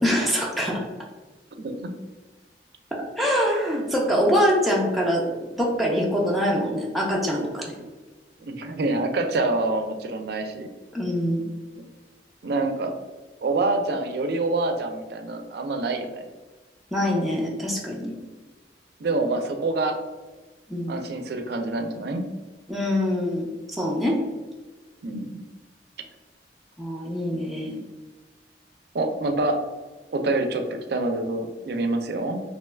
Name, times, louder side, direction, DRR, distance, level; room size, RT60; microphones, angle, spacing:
voice 1, 0.0-0.8 2.9-7.6 10.9-11.4 16.9-18.1 20.7-20.9 22.7-24.2 26.8-27.8, equal, ahead, -4 dB, 0.4 m, -24 dB
voice 2, 1.6-1.9 8.4-10.7 12.4-12.9 13.4-16.2 19.0-20.0 20.9-22.2 25.0-25.4 28.9-29.6 30.1-30.6 30.9-32.4, right 2 dB, 60° right, 5 dB, 0.4 m, -26 dB
2.9 x 2.2 x 3.2 m, 1.2 s
head